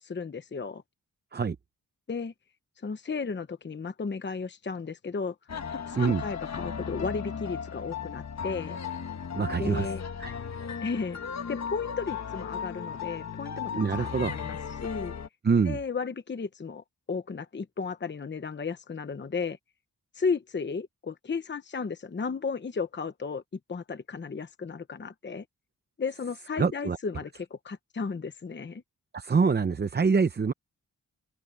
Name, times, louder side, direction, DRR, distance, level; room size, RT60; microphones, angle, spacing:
voice 1, 0.0-0.8 2.1-2.3 2.8-5.4 5.7-8.8 9.6-10.0 10.8-11.2 11.5-13.7 14.0-15.1 15.7-19.6 20.1-23.4 23.7-25.4 26.0-28.8, left 5 dB, 30° left, 0.9 m, -34 dB
sound 1, 5.5-15.3, left 6 dB, 50° left, 1.5 m, -36 dB
voice 2, 9.3-9.9 10.2-10.3 13.7-14.3 15.4-15.8 26.6-27.0 29.1-30.5, right 5 dB, 30° right, 0.6 m, -25 dB
wide cardioid pair, 155°, 35 cm